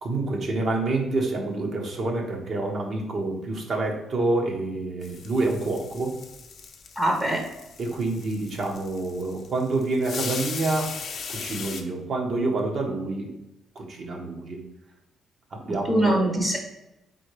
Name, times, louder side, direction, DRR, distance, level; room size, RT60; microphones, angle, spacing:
voice 1, 0.0-6.1 7.8-10.9 11.3-13.4 13.7-14.6 15.5-16.3, right 2 dB, 55° right, 2 dB, 1.1 m, -27 dB
sound 1, 5.0-11.8, left 5 dB, 55° left, 0.6 m, -38 dB
voice 2, 7.0-7.4 15.7-16.6, right 1 dB, 20° right, 1 dB, 0.8 m, -23 dB
4.0 x 3.9 x 3.2 m, 0.90 s
cardioid pair, 90°, 0 cm